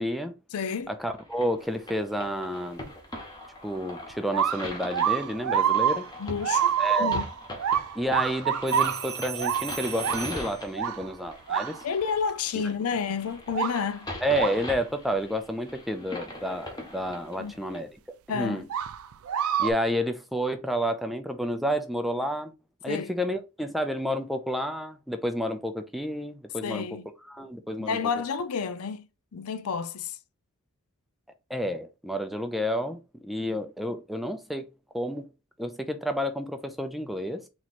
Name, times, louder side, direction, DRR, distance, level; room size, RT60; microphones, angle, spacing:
voice 1, 0.0-0.3 0.9-2.8 3.6-6.1 6.8-7.2 7.9-11.8 14.2-17.9 18.3-18.6 19.6-22.5 22.8-26.9 27.3-28.0 31.5-34.7 34.9-35.3 35.6-37.4, equal, ahead, 0.4 m, -30 dB
voice 2, 0.5-0.9 6.2-7.3 11.8-14.1 17.4-17.7 18.3-18.6 22.9-23.2 26.6-27.1 27.8-29.1 29.3-30.2 33.4-33.6, left 6 dB, 80° left, 0.5 m, -30 dB
sound 1, 1.1-17.8, left 1 dB, 20° left, 1.0 m, -41 dB
sound 2, 4.1-12.1 12.7-12.8 13.5-13.8 14.3-14.7 17.1-17.2 18.7-19.7, right 8 dB, 70° right, 0.4 m, -27 dB
sound 3, 8.7-10.7 13.0-13.3, right 8 dB, 45° right, 0.7 m, -37 dB
3.0 x 3.0 x 4.1 m
head